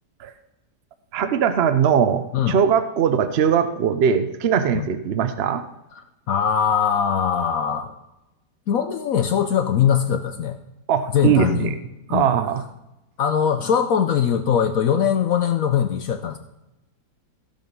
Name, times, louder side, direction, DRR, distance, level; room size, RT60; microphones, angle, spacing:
voice 1, 1.1-5.6 10.9-11.7 12.1-12.6, right 7 dB, 65° right, 9 dB, 0.6 m, -20 dB
voice 2, 6.0-7.9 8.7-10.6 11.1-11.7 12.1-12.3 13.2-16.4, left 8 dB, 65° left, 8 dB, 1.0 m, -21 dB
15.5 x 5.5 x 5.3 m, 0.94 s
omnidirectional pair, 1.8 m